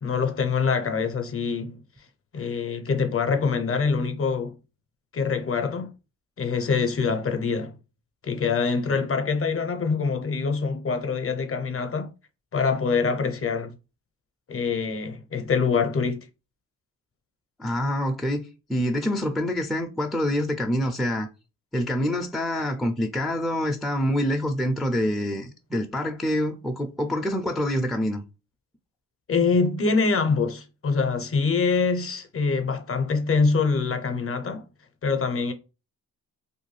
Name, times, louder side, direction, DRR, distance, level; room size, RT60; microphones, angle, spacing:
voice 1, 0.0-1.8 2.3-4.5 5.1-5.9 6.4-7.7 8.2-12.1 12.5-13.7 14.5-16.2 29.3-34.6 35.0-35.5, left 5 dB, 40° left, 0.6 m, -24 dB
voice 2, 17.6-18.4 18.7-21.3 21.7-28.2, equal, ahead, 0.4 m, -26 dB
2.6 x 2.2 x 3.1 m
cardioid pair, 70°, 37 cm